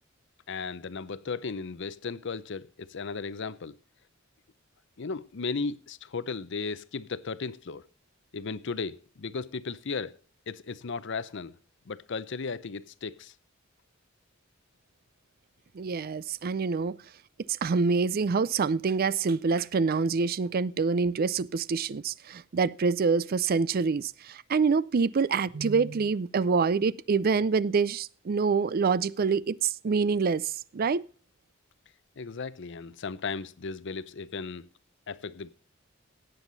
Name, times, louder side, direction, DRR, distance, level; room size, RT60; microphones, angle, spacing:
voice 1, 0.5-3.8 5.0-7.9 8.3-10.2 10.5-11.6 11.9-13.3 32.2-34.7 35.1-35.5, left 4 dB, 65° left, 0.7 m, -35 dB
voice 2, 15.8-17.0 17.6-31.0, right 5 dB, 50° right, 0.4 m, -26 dB
17.0 x 8.0 x 4.0 m
head